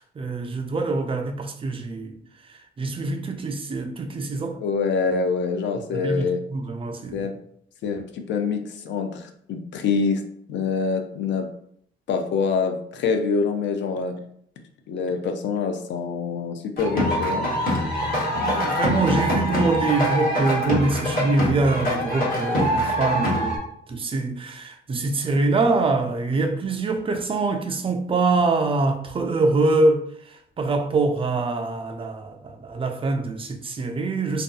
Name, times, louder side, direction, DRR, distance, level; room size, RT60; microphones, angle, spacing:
voice 1, 0.0-2.2 2.8-4.6 5.9-7.3 18.4-30.0 30.3-34.4, right 3 dB, 25° right, 0.4 m, -24 dB
voice 2, 4.6-6.4 7.1-7.4 7.8-10.2 10.5-11.5 12.1-14.2 14.9-17.5, left 5 dB, 65° left, 0.4 m, -25 dB
sound 1, 16.8-23.6, equal, 45° left, 1.2 m, -24 dB
2.6 x 2.3 x 2.3 m
cardioid pair, 90°, 20 cm